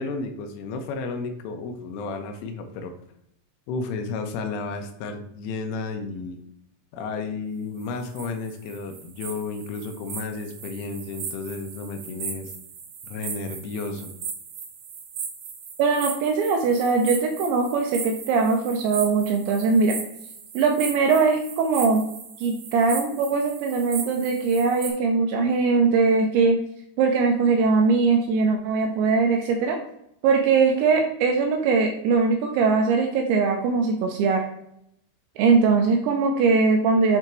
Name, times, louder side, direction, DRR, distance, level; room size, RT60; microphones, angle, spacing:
voice 1, 0.0-3.0 3.7-6.4 6.9-12.5 13.1-14.1, left 4 dB, 85° left, 5 dB, 3.1 m, -32 dB
Ambient Wild Track - Cricket Chorus, 7.8-24.9, right 6 dB, 65° right, 3.2 m, -37 dB
voice 2, 15.8-20.0 20.5-22.0 22.4-26.6 27.0-29.8 30.2-34.4 35.4-37.2, right 4 dB, 85° right, 3 dB, 2.7 m, -21 dB
7.9 x 3.5 x 4.4 m, 0.76 s
omnidirectional pair, 5.8 m